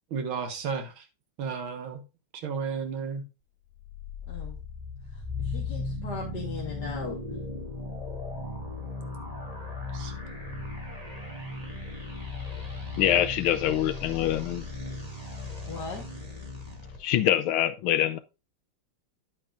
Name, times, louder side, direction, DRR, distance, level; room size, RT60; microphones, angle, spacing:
voice 1, 0.1-1.0 1.4-2.0 2.3-3.2 9.9-10.1, right 5 dB, 70° right, 2.2 m, -33 dB
sound 1, 3.7-17.0, left 3 dB, 15° right, 2.3 m, -37 dB
voice 2, 4.3-4.6 5.1-7.4 15.7-16.0, left 5 dB, 55° left, 2.0 m, -38 dB
voice 3, 13.0-14.6 17.0-18.2, left 11 dB, 75° left, 1.5 m, -24 dB
10.0 x 8.6 x 2.6 m
omnidirectional pair, 2.3 m